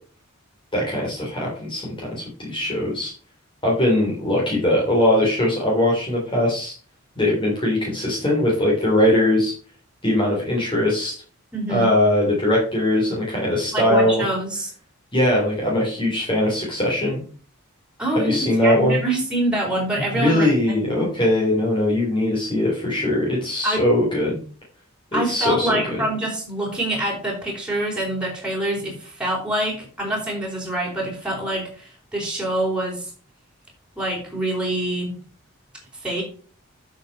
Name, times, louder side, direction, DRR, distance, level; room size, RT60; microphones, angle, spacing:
voice 1, 0.7-3.1 3.6-6.7 7.2-9.5 10.0-11.2 11.7-14.2 15.1-17.2 18.1-19.0 20.1-24.4 25.1-26.1, left 1 dB, 25° left, -4 dB, 3.6 m, -21 dB
voice 2, 11.5-11.9 13.7-14.7 18.0-20.8 23.6-23.8 25.1-33.1 34.0-35.2 36.0-36.2, right 1 dB, 5° right, -3 dB, 4.5 m, -25 dB
9.3 x 7.2 x 4.8 m, 0.41 s
head